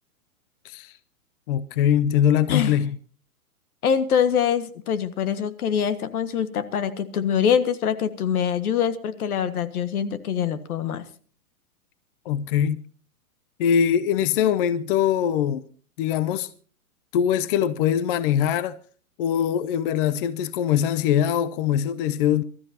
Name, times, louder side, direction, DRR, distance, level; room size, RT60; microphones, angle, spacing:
voice 1, 1.5-2.9 12.3-12.8 13.6-15.6 16.0-16.5 17.1-18.8 19.2-22.4, left 9 dB, 40° left, 0.6 m, -22 dB
voice 2, 3.8-11.1, left 8 dB, 75° left, 1.7 m, -24 dB
25.0 x 13.5 x 2.8 m
hypercardioid pair, 145°, 44 cm